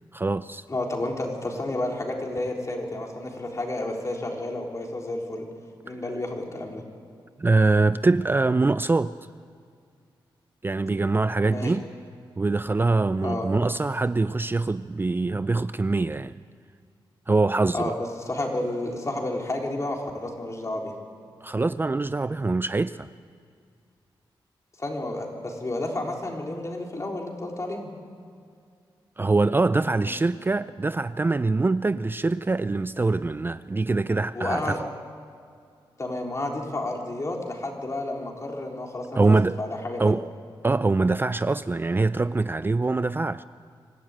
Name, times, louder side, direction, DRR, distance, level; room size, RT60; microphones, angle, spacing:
voice 1, 0.1-0.6 5.9-6.0 7.4-9.1 10.6-11.9 12.4-16.3 17.3-17.9 21.4-23.1 29.2-34.9 39.1-39.6 40.0-40.2 40.6-43.4, right 3 dB, 25° right, 0.4 m, -24 dB
voice 2, 0.7-5.5 5.8-6.8 11.5-11.7 13.2-13.5 17.7-18.0 18.3-20.9 24.8-27.9 30.0-30.1 34.3-34.8 36.0-40.2, left 2 dB, 35° left, 3.9 m, -31 dB
25.0 x 13.0 x 9.0 m
cardioid pair, 75°, 9 cm